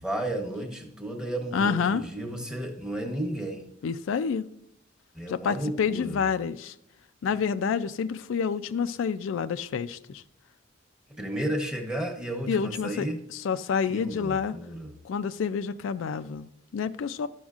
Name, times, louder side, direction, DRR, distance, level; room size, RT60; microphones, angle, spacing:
voice 1, 0.0-3.7 5.1-6.2 11.1-13.2 13.9-14.9, right 1 dB, 5° right, 0.9 m, -33 dB
voice 2, 1.5-2.0 3.8-4.4 5.3-6.7 7.2-10.2 12.5-13.1 13.4-14.5 15.0-17.3, left 6 dB, 90° left, 0.4 m, -28 dB
11.5 x 6.2 x 2.4 m
head